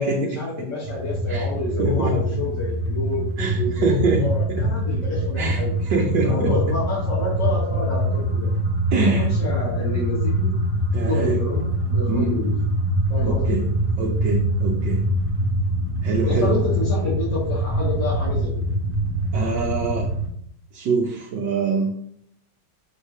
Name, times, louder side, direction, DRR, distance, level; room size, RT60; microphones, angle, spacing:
voice 1, 0.0-3.3 3.5-5.7 6.2-8.5 8.9-10.5 11.1-12.5 13.1-13.6 16.2-18.5, left 2 dB, 75° left, -10 dB, 2.7 m, -28 dB
sound 1, 0.8-20.3, right 1 dB, 10° right, 1.5 m, -24 dB
voice 2, 1.8-2.4 3.4-4.2 4.6-4.7 5.4-5.6 5.9-6.5 8.9-9.3 10.9-11.4 12.1-12.3 13.2-13.6 14.0-15.0 16.0-16.5 19.3-20.1 20.7-21.9, right 4 dB, 80° right, 0 dB, 1.6 m, -24 dB
6.8 x 3.3 x 5.5 m, 0.66 s
omnidirectional pair, 1.9 m